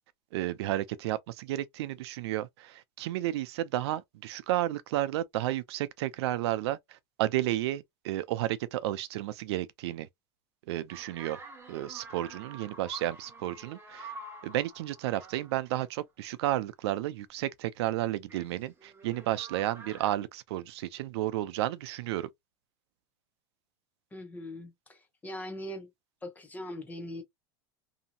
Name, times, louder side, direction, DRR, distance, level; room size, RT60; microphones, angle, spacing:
voice 1, 0.3-6.8 7.2-10.1 10.7-11.4 11.7-14.1 14.4-22.3, right 14 dB, 85° right, 0.4 m, -32 dB
sound 1, 10.9-15.8 18.3-20.1, right 2 dB, 15° right, 0.8 m, -48 dB
voice 2, 24.1-25.9 26.2-27.2, left 1 dB, 10° left, 0.7 m, -41 dB
2.7 x 2.7 x 2.5 m
supercardioid pair, 155°, 14 cm